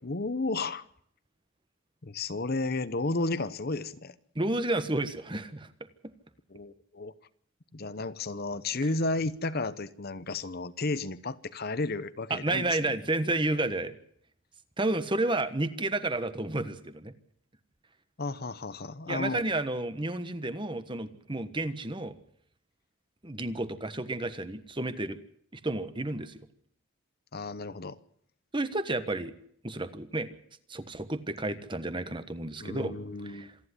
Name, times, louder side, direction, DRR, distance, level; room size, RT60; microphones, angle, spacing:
voice 1, 0.0-0.8 2.0-4.2 6.5-7.1 7.7-12.8 18.2-19.4 27.3-28.0 32.6-33.5, left 3 dB, 45° left, 14 dB, 0.9 m, -32 dB
voice 2, 4.3-5.7 6.0-6.1 12.3-13.9 14.8-17.1 19.1-22.1 23.2-25.2 25.5-26.4 28.5-29.3 29.6-30.3 30.7-32.9 33.2-33.5, right 2 dB, 25° right, 11 dB, 1.3 m, -31 dB
26.5 x 10.5 x 9.8 m, 0.67 s
head